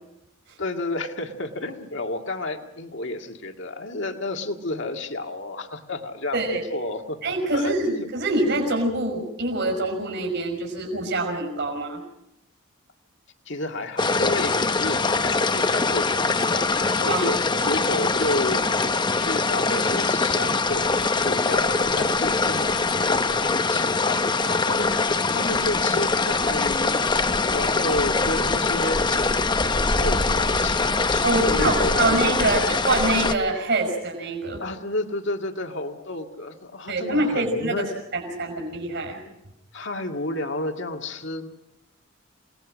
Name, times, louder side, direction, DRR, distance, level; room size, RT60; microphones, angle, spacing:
voice 1, 0.6-8.1 13.5-18.9 19.2-21.0 21.2-29.2 29.7-32.6 34.6-37.9 39.7-41.5, left 2 dB, 60° left, 4 dB, 2.0 m, -31 dB
voice 2, 6.3-6.6 7.2-12.0 17.1-17.3 17.6-17.7 31.2-34.6 36.9-37.8 38.1-39.2, right 2 dB, 55° right, 0 dB, 5.6 m, -25 dB
sound 1, 14.0-33.4, left 3 dB, 20° left, 0.8 m, -23 dB
28.0 x 19.0 x 6.3 m, 0.87 s
head